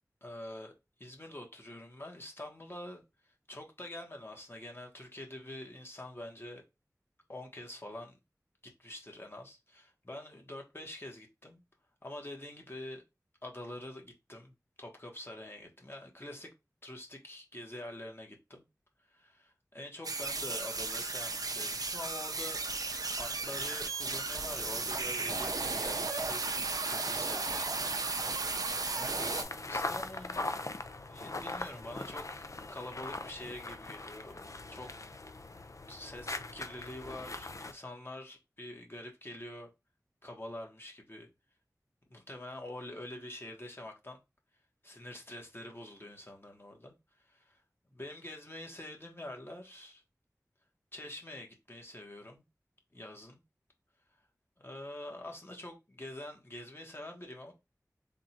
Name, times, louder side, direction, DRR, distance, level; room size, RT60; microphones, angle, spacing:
voice 1, 0.2-0.7 1.0-3.0 3.5-6.6 7.3-8.2 8.8-11.6 12.0-13.0 13.4-16.5 16.8-18.6 19.1-22.6 22.9-26.5 26.9-27.9 28.9-30.5 31.1-34.4 34.7-35.1 35.9-39.7 40.2-41.3 42.1-44.2 44.8-46.9 47.2-47.6 47.9-50.0 50.9-52.4 52.9-53.4 54.6-57.5, left 1 dB, 40° left, 1.3 m, -46 dB
sound 1, 20.0-29.4, right 3 dB, 85° right, 0.5 m, -34 dB
sound 2, 29.2-37.7, left 2 dB, 60° left, 0.4 m, -40 dB
3.7 x 2.4 x 4.3 m
wide cardioid pair, 50°, 6 cm